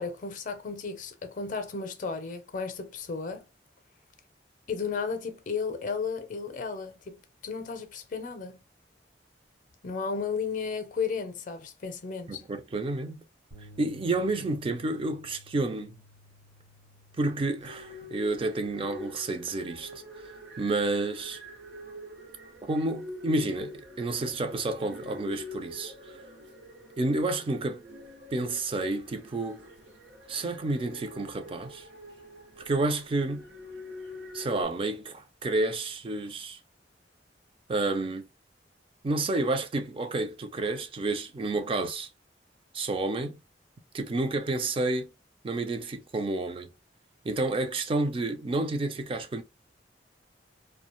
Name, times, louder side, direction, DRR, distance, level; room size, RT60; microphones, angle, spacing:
voice 1, 0.0-3.4 4.7-8.6 9.8-12.4, left 5 dB, 45° left, 0.5 m, -34 dB
voice 2, 12.3-13.2 13.8-16.0 17.2-20.0 20.6-21.4 22.6-26.2 27.0-27.8 28.3-29.7 30.3-31.9 32.6-33.4 34.3-36.6 37.7-38.3 39.0-42.1 42.7-43.4 43.9-45.1 45.4-46.7 47.2-49.4, right 2 dB, 30° right, 0.4 m, -30 dB
sound 1, 13.5-19.8, left 1 dB, 55° right, 1.1 m, -55 dB
sound 2, 17.6-34.6, left 1 dB, 90° right, 0.8 m, -46 dB
2.3 x 2.2 x 2.9 m
head